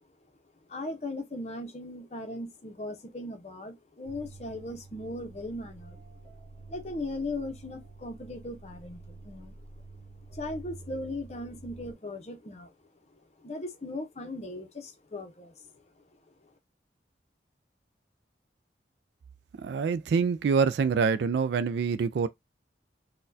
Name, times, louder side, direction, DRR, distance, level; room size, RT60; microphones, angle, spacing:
voice 1, 0.7-6.0 6.7-9.6 10.3-12.7 13.4-16.0 16.4-16.5, left 2 dB, 35° left, 0.7 m, -38 dB
sound 1, 4.0-11.9, right 2 dB, 10° left, 1.5 m, -48 dB
voice 2, 19.6-22.3, right 5 dB, 70° right, 0.3 m, -26 dB
4.1 x 2.2 x 2.6 m
head